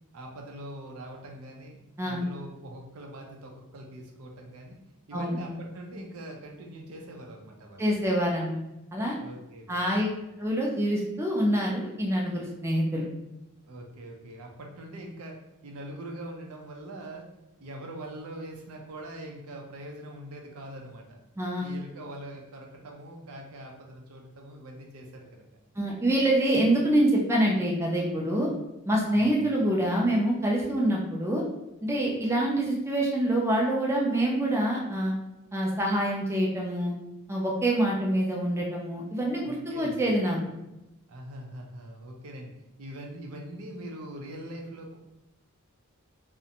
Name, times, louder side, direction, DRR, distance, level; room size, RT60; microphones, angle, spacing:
voice 1, 0.1-4.8 5.1-7.8 9.2-10.0 13.7-17.3 17.6-21.2 21.6-25.4 29.1-29.5 39.5-40.0 41.1-42.5 42.8-45.0, right 1 dB, 80° right, 1 dB, 0.5 m, -42 dB
voice 2, 7.8-8.6 8.9-9.2 9.7-10.1 10.4-13.1 21.4-21.7 25.8-28.5 28.9-31.4 31.8-35.1 35.5-36.9 37.3-40.4, right 1 dB, 10° right, -2 dB, 0.4 m, -26 dB
2.5 x 2.1 x 2.7 m, 0.92 s
head